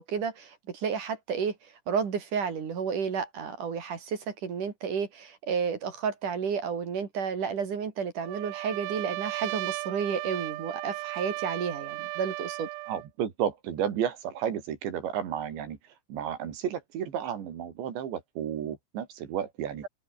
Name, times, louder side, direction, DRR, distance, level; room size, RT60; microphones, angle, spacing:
voice 1, 0.0-12.7, right 6 dB, 45° right, 3.9 m, -31 dB
Trumpet, 8.2-13.1, right 23 dB, 85° right, 2.7 m, -35 dB
voice 2, 12.9-15.8 16.1-19.9, right 9 dB, 60° right, 4.8 m, -32 dB
open air
omnidirectional pair, 6.0 m